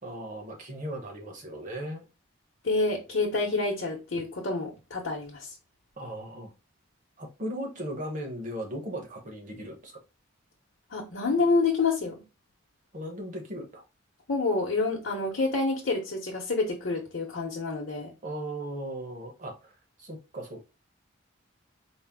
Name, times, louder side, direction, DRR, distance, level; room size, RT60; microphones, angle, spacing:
voice 1, 0.0-2.0 6.0-6.5 7.2-9.9 12.9-13.8 18.2-19.7 20.0-20.6, right 1 dB, 40° right, 0.9 m, -37 dB
voice 2, 2.6-5.5 10.9-12.2 14.3-18.1, left 3 dB, 65° left, 0.8 m, -28 dB
4.3 x 2.0 x 3.5 m
head